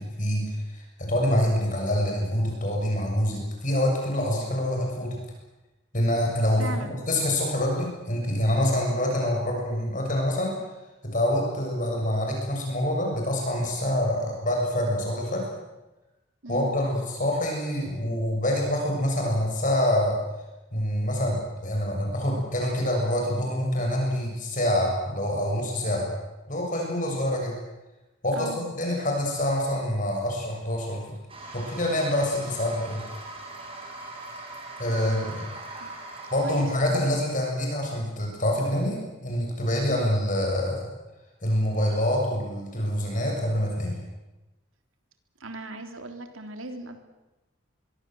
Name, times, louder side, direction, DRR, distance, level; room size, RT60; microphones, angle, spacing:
voice 1, 0.0-5.2 5.9-6.6 7.1-10.5 11.0-15.5 16.5-20.2 20.7-26.1 26.5-27.6 28.2-31.0 31.5-33.0 34.8-35.5 36.3-39.0 39.2-40.9 41.4-44.0, left 1 dB, 40° left, 0 dB, 7.1 m, -26 dB
voice 2, 6.6-7.0 16.4-16.8 28.3-28.6 35.0-35.9 36.4-37.2 39.9-40.1 45.4-47.0, right 2 dB, 85° right, 6 dB, 3.5 m, -39 dB
Toilet flush, 31.3-37.0, right 2 dB, 25° right, 6.1 m, -41 dB
24.5 x 23.0 x 7.9 m, 1.0 s
head